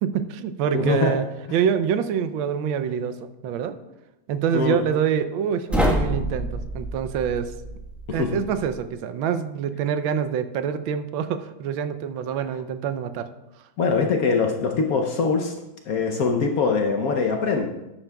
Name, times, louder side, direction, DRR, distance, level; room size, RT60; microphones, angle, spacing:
voice 1, 0.0-3.8 4.3-7.5 8.1-13.3, right 8 dB, 85° right, 10 dB, 1.4 m, -26 dB
voice 2, 0.7-1.1 4.5-4.8 8.1-8.4 13.8-15.5 15.8-17.7, left 4 dB, 60° left, 3 dB, 1.0 m, -22 dB
sound 1, 5.7-8.8, equal, ahead, 0.8 m, -27 dB
11.5 x 8.7 x 2.2 m, 0.97 s
omnidirectional pair, 2.1 m